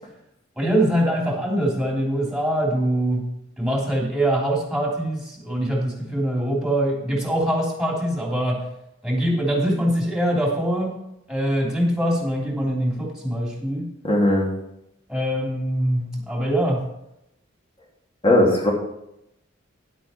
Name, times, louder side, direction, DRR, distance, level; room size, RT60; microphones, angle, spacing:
voice 1, 0.6-8.6 9.0-11.0 11.3-13.9 15.1-16.9, right 1 dB, ahead, -2 dB, 3.1 m, -23 dB
voice 2, 14.0-14.5 18.2-18.7, left 1 dB, 30° left, -1 dB, 2.7 m, -17 dB
10.5 x 8.4 x 4.4 m, 0.83 s
head